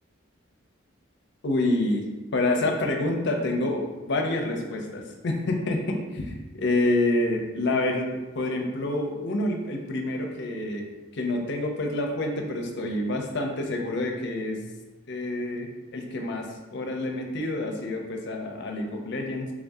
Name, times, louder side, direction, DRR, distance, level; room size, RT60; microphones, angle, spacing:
voice 1, 1.4-2.0 2.3-14.6 15.1-19.5, left 2 dB, 55° left, 2 dB, 0.5 m, -28 dB
3.5 x 2.6 x 3.5 m, 1.1 s
head